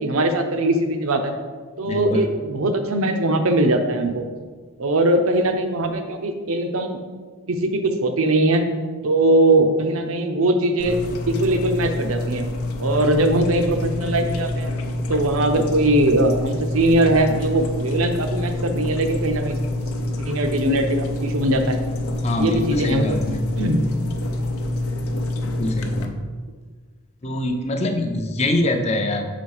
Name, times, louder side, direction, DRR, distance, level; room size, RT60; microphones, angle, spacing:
voice 1, 0.0-1.3 1.8-4.2 4.8-7.0 7.5-8.6 9.0-11.0 11.3-12.5 12.8-14.7 15.1-19.6 20.2-21.8 22.4-23.2 23.6-23.8, right 1 dB, 70° right, 6 dB, 0.7 m, -20 dB
voice 2, 1.8-2.3 22.2-23.4 25.4-26.2 27.2-29.3, left 1 dB, 30° left, 5 dB, 0.5 m, -24 dB
sound 1, 10.8-26.1, left 1 dB, 80° left, 0.6 m, -27 dB
6.3 x 4.1 x 4.8 m, 1.5 s
head